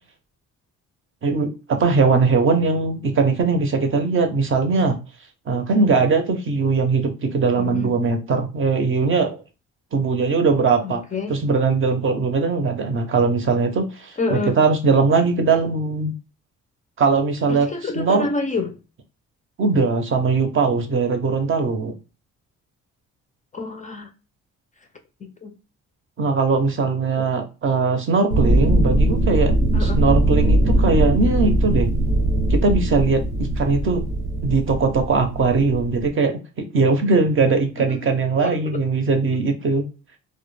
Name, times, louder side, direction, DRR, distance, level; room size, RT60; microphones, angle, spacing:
voice 1, 1.2-5.0 5.5-9.4 9.9-11.0 11.3-16.1 17.0-18.3 19.6-21.9 26.2-29.5 29.8-31.9 32.5-34.0 34.4-39.8, right 4 dB, 45° right, 0.6 m, -20 dB
voice 2, 7.6-7.9 10.8-11.3 14.2-14.6 17.5-18.8 23.5-24.1 25.2-25.5 27.2-27.3 29.7-30.0 37.8-38.0 38.3-38.8, left 3 dB, 25° left, 0.4 m, -28 dB
sound 1, 28.3-36.1, right 1 dB, 90° right, 0.9 m, -20 dB
2.1 x 2.1 x 3.1 m
cardioid pair, 90°, 30 cm